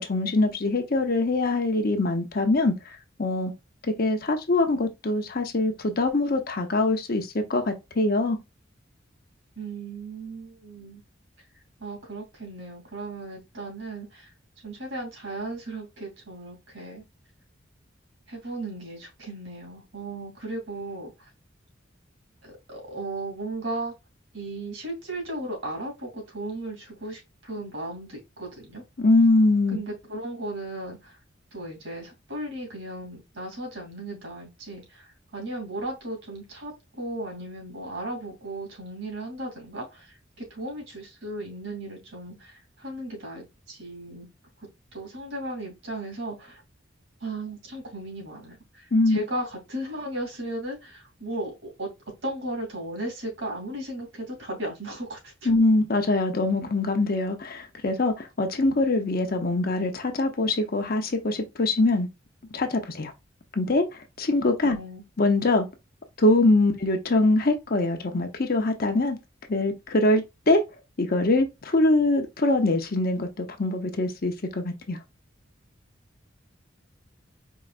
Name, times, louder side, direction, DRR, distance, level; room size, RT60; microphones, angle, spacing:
voice 1, 0.0-3.5 3.8-8.4 29.0-29.8 48.9-49.2 55.4-62.1 62.5-63.1 63.5-64.8 65.2-65.7 66.2-69.2 69.5-70.6 71.0-75.0, left 2 dB, 50° left, 0.8 m, -23 dB
voice 2, 9.6-11.0 11.8-14.3 14.6-17.0 18.3-21.3 22.4-23.9 24.3-28.8 29.7-31.2 31.5-44.3 44.9-46.6 47.2-51.5 51.8-51.9 52.2-55.5 64.6-65.0, right 1 dB, 75° right, 2.8 m, -36 dB
4.8 x 3.1 x 2.4 m
head